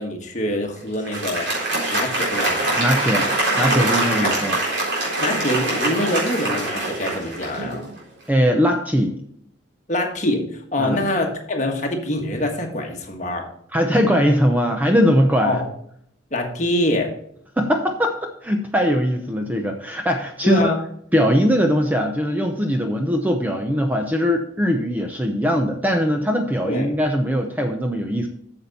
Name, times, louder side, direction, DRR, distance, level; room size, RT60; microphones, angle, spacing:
voice 1, 0.0-1.5 1.9-2.7 4.2-4.4 5.2-7.8 9.9-13.5 15.4-15.7 16.3-17.1 20.4-20.8 26.6-26.9, left 1 dB, 35° left, 2 dB, 1.5 m, -24 dB
Applause, 0.9-7.9, right 2 dB, 65° right, 3.9 m, -23 dB
voice 2, 2.8-4.6 8.3-9.2 10.8-11.0 13.7-15.6 17.6-20.7 21.1-28.3, equal, 10° right, 4 dB, 0.6 m, -20 dB
8.4 x 7.0 x 4.1 m, 0.68 s
head